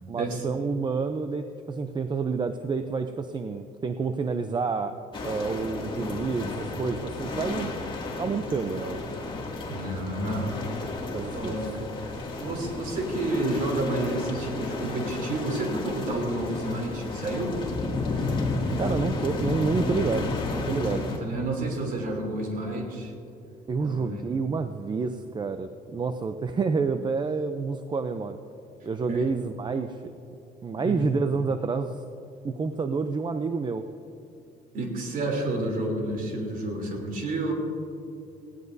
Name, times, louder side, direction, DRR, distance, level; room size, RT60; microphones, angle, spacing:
voice 1, 0.1-7.7 8.2-9.0 11.1-11.6 18.8-21.1 23.7-28.4 28.8-30.1 30.6-32.1 32.4-33.8, right 4 dB, 25° right, 8 dB, 0.5 m, -29 dB
sound 1, 5.1-21.2, left 2 dB, 30° left, 2.3 m, -32 dB
voice 2, 9.7-10.5 11.2-17.6 21.0-23.1 23.8-24.2 29.1-29.3 30.8-31.1 34.7-37.5, right 2 dB, 55° right, 1 dB, 3.2 m, -30 dB
19.0 x 17.0 x 2.7 m, 2.6 s
cardioid pair, 110°, 17 cm